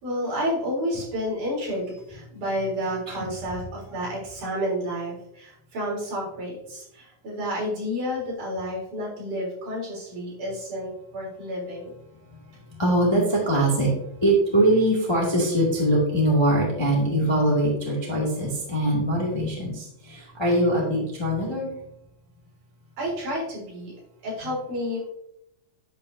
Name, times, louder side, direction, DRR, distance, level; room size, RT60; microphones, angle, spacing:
voice 1, 0.0-11.9 23.0-24.0 24.2-25.1, equal, 60° right, -6 dB, 5.2 m, -30 dB
voice 2, 12.7-13.9 14.2-21.7, right 1 dB, 10° left, -3 dB, 1.6 m, -22 dB
10.5 x 9.0 x 2.8 m, 0.78 s
omnidirectional pair, 4.0 m